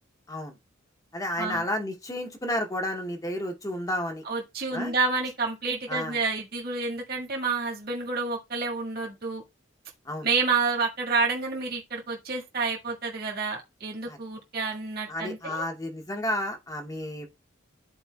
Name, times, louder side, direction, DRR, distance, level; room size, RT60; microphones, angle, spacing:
voice 1, 1.1-4.2 4.7-4.9 5.9-6.2 10.0-10.3 14.1-14.2 15.1-17.3, left 1 dB, 15° left, 0.8 m, -31 dB
voice 2, 4.2-9.4 10.2-15.6, right 4 dB, 50° right, 1.6 m, -29 dB
13.0 x 4.3 x 2.2 m
head